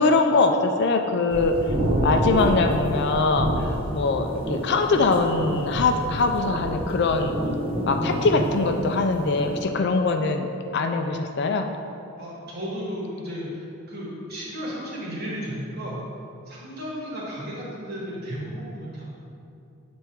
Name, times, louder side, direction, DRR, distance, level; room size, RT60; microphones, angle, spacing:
voice 1, 0.0-1.8 2.0-7.3 7.9-10.5 10.7-11.7, left 3 dB, 50° left, 5 dB, 0.3 m, -22 dB
sound 1, 1.3-9.6, right 1 dB, 25° right, 0.6 m, -28 dB
voice 2, 12.2-16.0 16.5-19.0, equal, 45° right, -5 dB, 1.5 m, -34 dB
7.9 x 3.5 x 4.5 m, 2.7 s
head